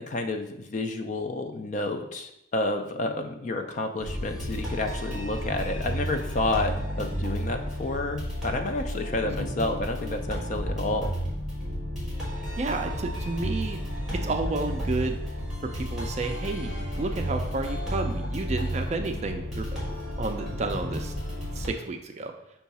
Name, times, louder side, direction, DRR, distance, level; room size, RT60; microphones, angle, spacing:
voice 1, 0.0-11.1, left 2 dB, 40° left, 6 dB, 0.4 m, -30 dB
sound 1, 4.0-21.7, equal, ahead, 1.3 m, -32 dB
voice 2, 12.6-13.8 14.1-15.2 15.6-19.8 20.2-21.1 21.5-22.3, right 3 dB, 35° right, 5 dB, 0.4 m, -31 dB
5.6 x 2.3 x 4.0 m, 0.81 s
head